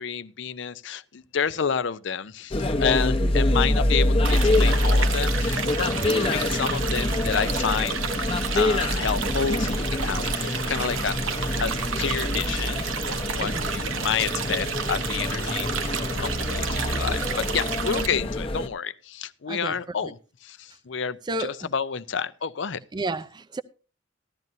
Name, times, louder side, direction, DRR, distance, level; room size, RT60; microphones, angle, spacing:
voice 1, 0.0-8.0 8.5-11.2 11.6-11.7 12.0-22.8, left 7 dB, 65° left, 0.6 m, -30 dB
sound 1, 2.5-18.7, left 1 dB, 30° left, 0.9 m, -25 dB
sound 2, 4.2-18.1, right 6 dB, 80° right, 1.0 m, -31 dB
voice 2, 13.4-13.8 19.5-19.8 21.3-21.7 22.9-23.6, right 2 dB, 20° right, 0.5 m, -32 dB
15.0 x 12.0 x 2.7 m
head